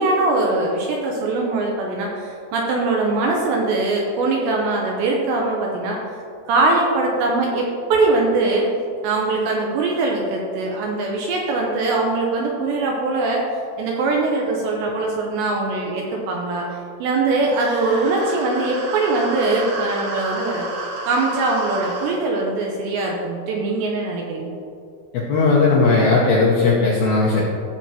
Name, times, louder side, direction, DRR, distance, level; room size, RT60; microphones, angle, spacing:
voice 1, 0.0-6.0 6.5-8.7 9.0-13.4 13.8-20.7 21.1-24.6, right 3 dB, 80° right, -1 dB, 2.7 m, -22 dB
sound 1, 17.5-22.1, right 2 dB, 60° right, 2.4 m, -31 dB
voice 2, 25.1-27.4, left 3 dB, 75° left, -4 dB, 2.3 m, -17 dB
15.0 x 7.0 x 2.9 m, 2.5 s
omnidirectional pair, 5.8 m